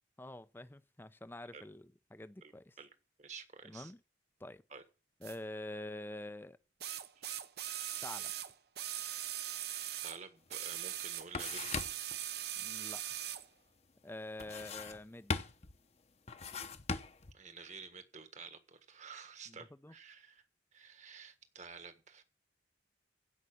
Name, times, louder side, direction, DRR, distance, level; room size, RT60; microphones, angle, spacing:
voice 1, 0.2-2.7 3.6-4.0 4.4-4.6 5.2-6.6 8.0-8.3 12.6-13.0 14.0-15.3 19.5-19.9, left 1 dB, 10° left, 0.5 m, -46 dB
voice 2, 3.2-3.9 4.7-4.8 7.1-7.3 10.0-11.8 17.3-20.5 20.7-22.2, right 5 dB, 40° right, 1.5 m, -51 dB
sound 1, 5.2-5.4 6.8-10.2 10.5-13.5 14.4-14.5, right 12 dB, 60° right, 0.9 m, -40 dB
sound 2, 10.5-10.6 10.9-12.2 14.4-15.1 15.3-15.8 16.3-17.3, left 4 dB, 35° left, 0.9 m, -39 dB
16.0 x 5.5 x 8.6 m
head